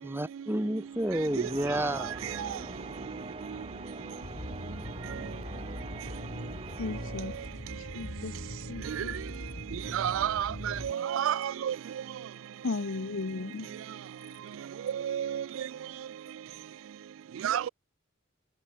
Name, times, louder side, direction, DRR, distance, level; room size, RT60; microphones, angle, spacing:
voice 1, 0.0-2.1, right 1 dB, 10° right, 2.3 m, -30 dB
sound 1, 0.9-7.8, right 2 dB, 30° right, 3.8 m, -43 dB
sound 2, 4.2-10.9, left 1 dB, 50° left, 1.5 m, -41 dB
voice 2, 6.8-7.3 7.9-8.3 8.7-9.2 12.6-13.7, left 3 dB, 75° left, 0.7 m, -35 dB
voice 3, 9.9-11.7 15.0-15.4 17.4-17.7, right 10 dB, 80° right, 0.3 m, -29 dB
head